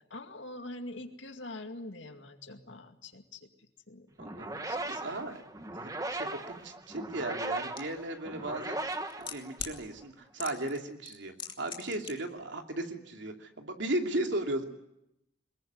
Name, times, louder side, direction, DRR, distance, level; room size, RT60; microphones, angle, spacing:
voice 1, 0.0-4.1 4.4-5.4, left 2 dB, 90° left, 6 dB, 2.3 m, -45 dB
sound 1, 4.2-10.0, right 2 dB, 20° right, 1.3 m, -38 dB
voice 2, 4.2-5.4 5.7-8.8 9.2-14.6, right 1 dB, 75° right, 4 dB, 2.8 m, -36 dB
sound 2, 7.8-7.9 8.8-9.8 10.4-10.8 11.0-12.1 12.4-12.5, left 7 dB, 25° left, 2.6 m, -39 dB
23.5 x 21.0 x 9.4 m, 0.84 s
head